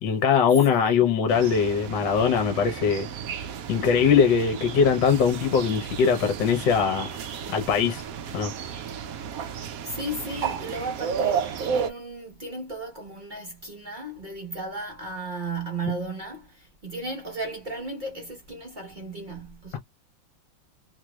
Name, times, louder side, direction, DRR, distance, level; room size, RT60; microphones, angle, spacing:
voice 1, 0.0-3.1 3.7-7.2 7.5-8.0 8.3-8.5, left 6 dB, 70° left, 1.4 m, -21 dB
voice 2, 0.7-1.4 9.8-19.8, right 2 dB, 40° right, 0.7 m, -35 dB
sound 1, 1.3-11.9, right 7 dB, 80° right, 0.7 m, -33 dB
3.3 x 3.0 x 2.3 m
omnidirectional pair, 2.2 m